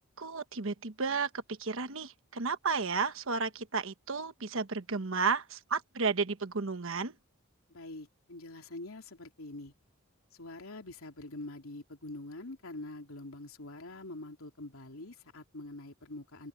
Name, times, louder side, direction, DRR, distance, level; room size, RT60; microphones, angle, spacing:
voice 1, 0.2-1.3 1.6-7.1, right 4 dB, 70° right, 1.2 m, -32 dB
voice 2, 7.7-9.7 10.4-16.5, left 2 dB, 90° left, 3.0 m, -45 dB
head